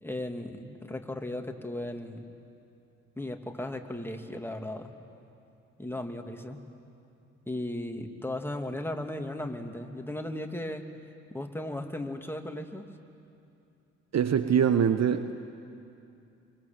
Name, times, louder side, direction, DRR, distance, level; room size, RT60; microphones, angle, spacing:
voice 1, 0.0-2.3 3.2-4.9 5.8-6.6 7.5-10.8 11.3-12.9, left 1 dB, 5° left, 4 dB, 2.7 m, -36 dB
voice 2, 14.1-15.4, right 8 dB, 45° right, 10 dB, 1.2 m, -24 dB
27.5 x 23.5 x 7.7 m, 2.6 s
hypercardioid pair, 45°, 37 cm